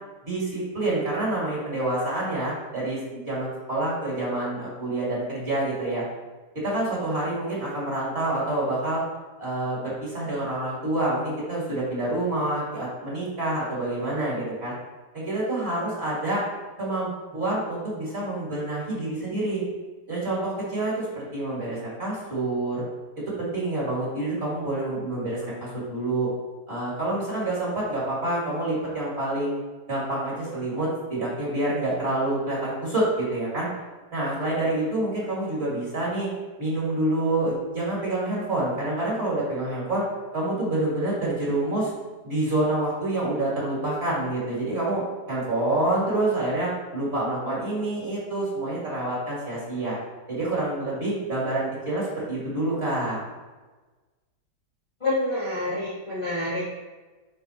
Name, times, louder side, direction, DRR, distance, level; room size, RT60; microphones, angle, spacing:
voice 1, 0.2-6.0 6.6-9.0 9.4-14.7 15.1-16.4 16.8-19.6 20.1-22.8 23.4-26.3 26.7-29.6 29.9-33.7 34.1-36.3 36.6-40.0 40.3-41.9 42.2-50.0 50.3-53.2, right 2 dB, 35° right, -7 dB, 2.2 m, -27 dB
voice 2, 55.0-56.6, left 2 dB, 20° left, -9 dB, 1.1 m, -27 dB
9.4 x 3.9 x 2.9 m, 1.3 s
omnidirectional pair, 1.9 m